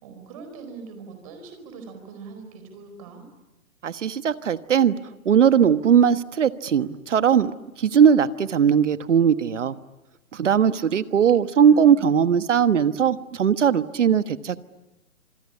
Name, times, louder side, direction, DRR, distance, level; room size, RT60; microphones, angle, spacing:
voice 1, 0.0-3.2 10.7-11.2 11.5-12.0, right 5 dB, 25° right, 7 dB, 4.5 m, -42 dB
voice 2, 3.8-4.9 5.2-7.5 7.8-9.7 10.3-14.7, right 8 dB, 60° right, 13 dB, 1.4 m, -19 dB
26.5 x 22.5 x 9.8 m, 0.98 s
hypercardioid pair, 170°, 41 cm